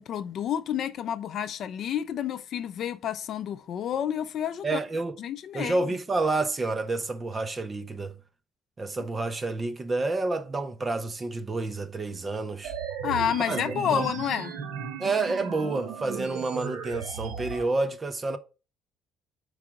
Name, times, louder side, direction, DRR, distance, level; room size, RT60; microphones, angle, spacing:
voice 1, 0.0-4.8 5.2-5.8 13.0-14.6, left 9 dB, 45° left, 0.5 m, -29 dB
voice 2, 4.6-5.2 5.5-8.2 8.8-12.7 13.5-14.1 15.0-18.4, right 3 dB, 15° right, 0.5 m, -29 dB
sound 1, 12.6-17.6, right 6 dB, 80° right, 1.4 m, -36 dB
4.9 x 4.8 x 5.8 m
cardioid pair, 180°, 0 cm